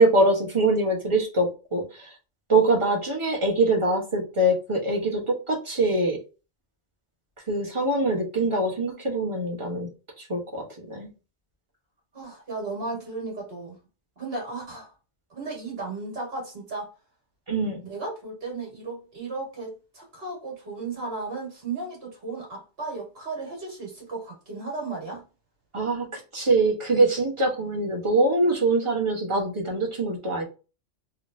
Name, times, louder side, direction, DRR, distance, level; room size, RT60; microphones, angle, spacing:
voice 1, 0.0-2.2 2.5-6.2 7.5-9.9 10.2-11.1 17.5-17.8 25.7-30.4, right 2 dB, 25° right, 1.1 m, -23 dB
voice 2, 12.1-13.8 14.2-14.9 15.3-16.9 17.8-25.2, right 3 dB, 55° right, 2.0 m, -35 dB
3.7 x 3.2 x 2.7 m
omnidirectional pair, 1.3 m